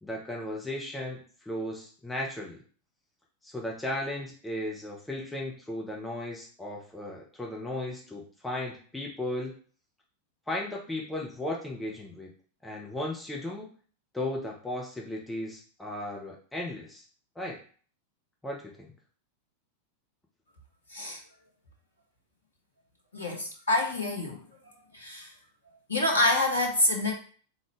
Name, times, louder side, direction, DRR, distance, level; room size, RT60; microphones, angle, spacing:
voice 1, 0.0-2.6 3.4-9.5 10.5-12.3 12.6-13.7 14.1-17.0 17.3-17.6 18.4-18.9, left 1 dB, 5° left, -3 dB, 1.0 m, -35 dB
voice 2, 23.1-24.4 24.9-25.3 25.9-27.1, left 2 dB, 75° left, 1 dB, 1.1 m, -26 dB
3.9 x 3.8 x 3.2 m, 0.43 s
figure-of-eight pair, 90°, 0 cm